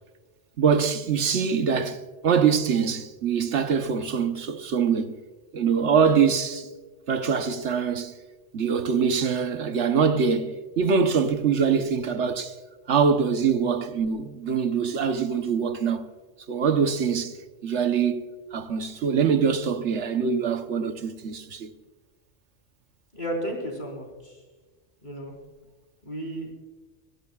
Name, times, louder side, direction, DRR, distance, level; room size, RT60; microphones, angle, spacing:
voice 1, 0.6-5.1 5.5-6.7 7.1-8.1 8.5-12.6 12.9-16.1 16.5-17.4 17.6-21.7, right 6 dB, 70° right, 1.2 m, -24 dB
voice 2, 23.1-24.4 25.0-25.3 26.0-26.5, right 1 dB, 40° left, 4.1 m, -33 dB
22.0 x 16.0 x 2.4 m
omnidirectional pair, 1.3 m